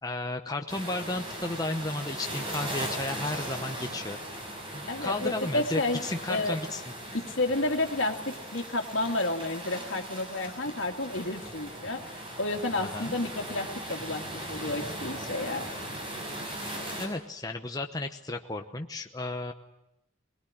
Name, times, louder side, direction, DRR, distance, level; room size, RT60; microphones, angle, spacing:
voice 1, 0.0-4.4 4.7-6.8 12.8-13.1 17.0-19.5, left 2 dB, 20° left, 4 dB, 1.0 m, -34 dB
sound 1, 0.7-17.1, right 1 dB, 25° right, 6.7 m, -38 dB
voice 2, 4.9-6.6 7.1-15.7, left 2 dB, 65° left, 4 dB, 2.4 m, -31 dB
22.5 x 21.5 x 9.8 m, 0.85 s
head